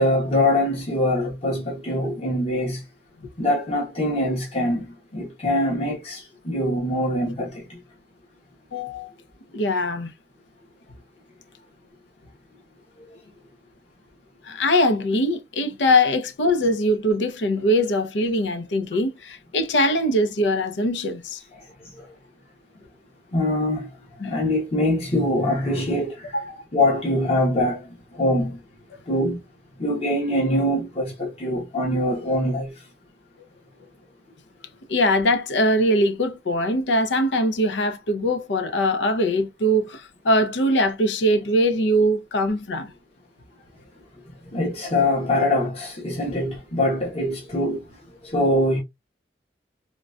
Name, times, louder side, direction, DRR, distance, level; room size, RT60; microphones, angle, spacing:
voice 1, 0.0-2.8 3.4-7.8 13.1-13.2 21.5-22.1 23.3-23.9 24.2-26.4 26.7-28.6 29.1-29.4 29.8-32.9 44.2-48.8, left 1 dB, 35° left, 0.9 m, -24 dB
voice 2, 8.7-9.1 9.5-10.1 14.4-21.4 24.2-24.3 26.3-26.6 34.9-42.9, equal, 85° left, 0.6 m, -22 dB
3.8 x 2.2 x 2.4 m
head